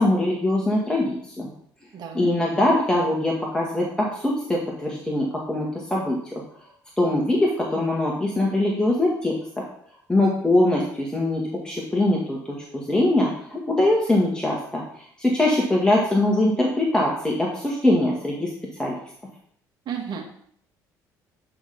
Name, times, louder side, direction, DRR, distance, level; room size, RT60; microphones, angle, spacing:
voice 1, 0.0-1.5 2.1-6.4 7.0-9.6 10.1-14.8 15.2-18.5 18.8-19.0, left 1 dB, 10° left, -3 dB, 2.0 m, -22 dB
voice 2, 1.9-2.3 19.9-20.3, right 7 dB, 55° right, 2 dB, 1.9 m, -32 dB
9.1 x 3.9 x 5.2 m, 0.64 s
hypercardioid pair, 60°, 9 cm